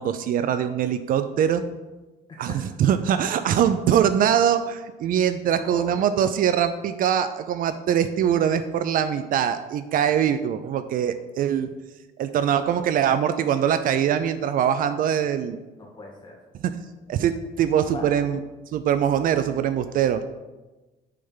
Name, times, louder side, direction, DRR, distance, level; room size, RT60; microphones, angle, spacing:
voice 1, 0.0-1.6 2.4-11.7 12.2-15.6 16.6-16.7 17.1-18.4 18.7-20.2, right 9 dB, 55° right, 11 dB, 0.4 m, -23 dB
voice 2, 2.3-2.7 5.4-6.1 15.8-16.4 17.9-18.2, left 2 dB, 25° left, -1 dB, 1.6 m, -40 dB
6.6 x 3.4 x 5.5 m, 1.1 s
cardioid pair, 110°, 17 cm